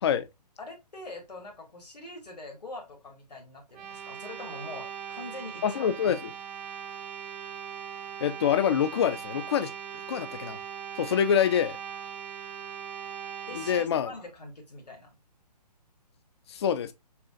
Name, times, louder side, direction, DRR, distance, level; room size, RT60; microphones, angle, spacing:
voice 1, 0.6-5.9 13.5-15.1, left 2 dB, 70° left, 1.8 m, -43 dB
sound 1, 3.7-13.9, right 8 dB, 10° right, 0.6 m, -40 dB
voice 2, 5.6-6.3 8.2-9.7 10.1-10.6 11.0-11.8 13.5-14.1 16.5-16.9, left 8 dB, 40° left, 0.5 m, -26 dB
6.7 x 2.4 x 2.4 m
figure-of-eight pair, 135°, 21 cm